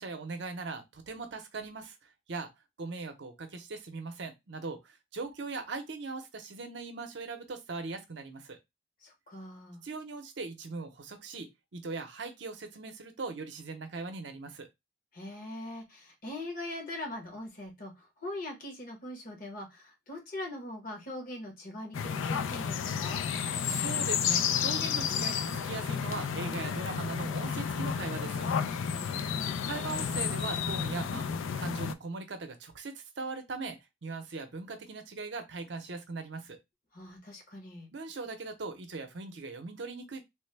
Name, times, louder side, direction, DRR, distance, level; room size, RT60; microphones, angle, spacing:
voice 1, 0.0-2.0 2.3-2.5 2.8-8.6 9.8-14.7 23.6-28.5 29.6-31.3 31.6-36.6 37.9-40.2, right 3 dB, 65° right, 0.6 m, -40 dB
voice 2, 9.0-9.8 15.1-23.2 28.9-29.5 36.9-37.9, left 1 dB, 45° left, 1.0 m, -42 dB
sound 1, 21.9-31.9, left 7 dB, 80° left, 0.3 m, -31 dB
3.1 x 2.1 x 3.2 m
head